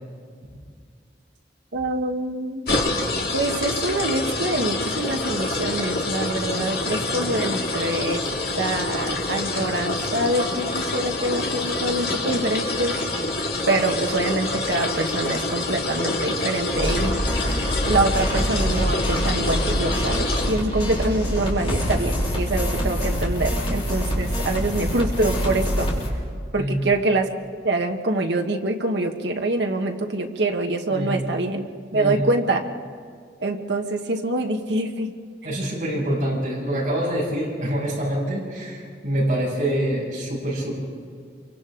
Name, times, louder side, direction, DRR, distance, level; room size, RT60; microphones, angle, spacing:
voice 1, 1.7-2.7 3.3-8.2 8.6-13.0 13.7-17.2 17.9-25.9 26.5-27.3 27.6-31.6 31.9-32.7 33.4-35.1, right 2 dB, 80° right, 3 dB, 1.3 m, -25 dB
sound 1, 2.7-20.5, left 2 dB, 55° left, 2.2 m, -26 dB
sound 2, 16.7-26.1, equal, 35° left, 4.3 m, -25 dB
voice 2, 26.5-26.9 30.9-31.3 31.9-32.2 35.4-40.7, right 1 dB, 45° right, -6 dB, 7.3 m, -25 dB
28.0 x 24.5 x 3.9 m, 2.1 s
head